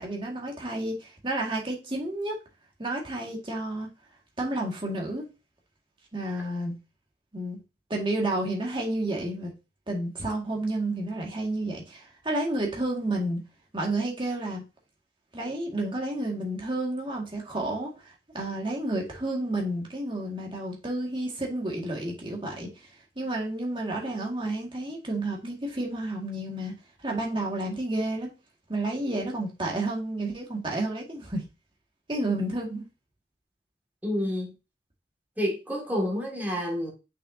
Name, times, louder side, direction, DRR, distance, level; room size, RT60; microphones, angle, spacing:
voice 1, 0.0-2.4 2.8-3.9 4.4-5.3 6.1-6.7 7.3-7.6 7.9-9.5 9.9-13.4 13.7-14.6 15.3-22.7 23.2-26.7 27.0-28.3 28.7-31.4 32.1-32.8, right 1 dB, 30° right, 0 dB, 1.9 m, -30 dB
voice 2, 34.0-34.5 35.4-36.9, equal, 10° right, -2 dB, 2.1 m, -29 dB
6.6 x 6.1 x 2.7 m, 0.28 s
head